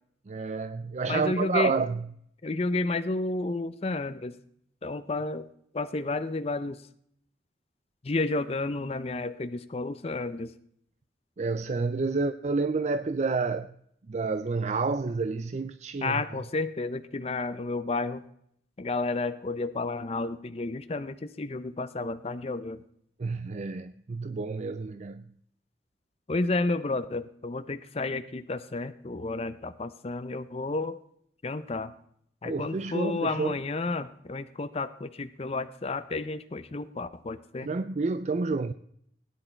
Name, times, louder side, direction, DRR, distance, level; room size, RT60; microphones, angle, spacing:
voice 1, 0.3-2.1 11.4-13.7 14.1-16.2 23.2-25.2 32.4-33.6 37.6-38.7, right 4 dB, 40° right, 0.4 m, -29 dB
voice 2, 1.1-1.7 2.4-4.3 4.8-5.5 5.7-6.8 8.0-10.5 16.0-18.2 18.8-22.8 26.3-31.0 31.4-31.9 32.4-37.7, left 3 dB, 35° left, 0.6 m, -31 dB
17.0 x 10.5 x 4.4 m
head